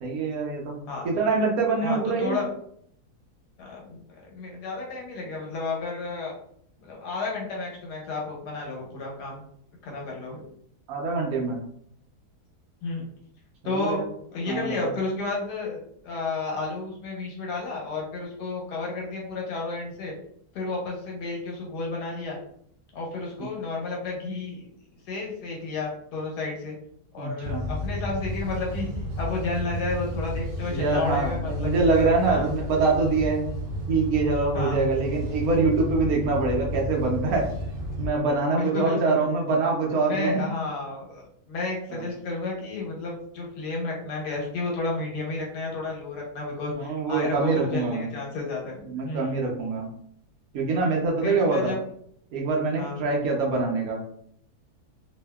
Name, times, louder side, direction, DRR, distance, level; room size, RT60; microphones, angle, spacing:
voice 1, 0.0-2.4 10.9-11.6 13.6-14.0 14.5-14.9 27.2-27.6 30.7-33.5 33.9-37.5 38.0-40.4 41.9-42.0 46.8-48.1 48.9-49.9 50.5-51.7 52.3-54.0, right 3 dB, 70° right, 0 dB, 1.1 m, -24 dB
voice 2, 1.8-2.5 3.6-6.3 6.8-9.4 9.8-10.4 12.8-13.1 13.6-14.0 14.3-15.8 16.0-20.1 20.5-22.4 22.9-24.7 25.1-26.8 27.1-28.9 29.2-31.9 32.2-32.5 34.5-34.8 38.5-39.3 40.0-48.7 49.0-49.4 51.2-51.8 52.8-53.0, left 3 dB, 90° left, -2 dB, 1.4 m, -32 dB
sound 1, 27.4-38.1, left 1 dB, 85° right, 0.4 m, -32 dB
2.7 x 2.6 x 2.2 m, 0.68 s
omnidirectional pair, 1.7 m